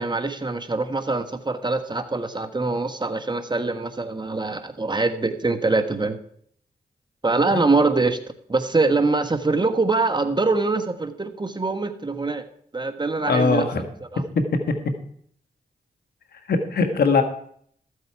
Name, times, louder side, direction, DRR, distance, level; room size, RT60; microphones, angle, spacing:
voice 1, 0.0-6.2 7.2-8.2 8.5-12.5 12.7-13.7 14.1-14.2, right 3 dB, 25° right, 8 dB, 1.4 m, -23 dB
voice 2, 13.3-13.8 16.5-17.2, left 4 dB, 75° left, 7 dB, 1.5 m, -20 dB
13.5 x 8.0 x 4.7 m, 0.63 s
cardioid pair, 45°, 16 cm